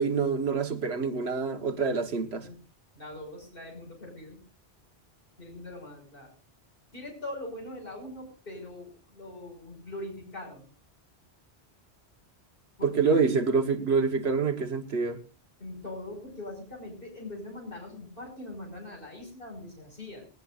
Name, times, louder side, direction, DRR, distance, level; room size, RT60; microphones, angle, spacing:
voice 1, 0.0-2.5 12.8-15.2, right 5 dB, 75° right, 1.6 m, -26 dB
voice 2, 2.0-2.6 2.9-4.4 5.4-6.3 6.9-10.7 12.8-13.2 15.6-20.3, left 1 dB, 55° left, 6.0 m, -42 dB
19.0 x 19.0 x 2.5 m
omnidirectional pair, 1.1 m